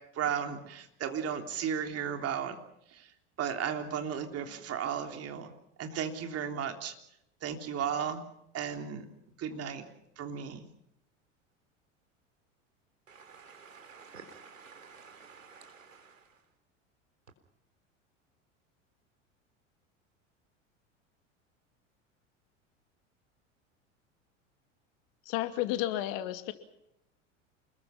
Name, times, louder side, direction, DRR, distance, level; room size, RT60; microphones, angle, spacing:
voice 1, 0.1-2.6 2.9-3.1 3.4-5.5 5.8-6.9 7.4-8.2 8.5-9.1 9.4-9.8 10.2-10.6, right 8 dB, 40° right, 3.5 m, -34 dB
voice 2, 13.1-16.5, right 5 dB, 85° right, 3.8 m, -52 dB
voice 3, 25.3-26.5, left 14 dB, 55° left, 2.6 m, -32 dB
28.5 x 21.5 x 5.8 m
figure-of-eight pair, 80°, 38 cm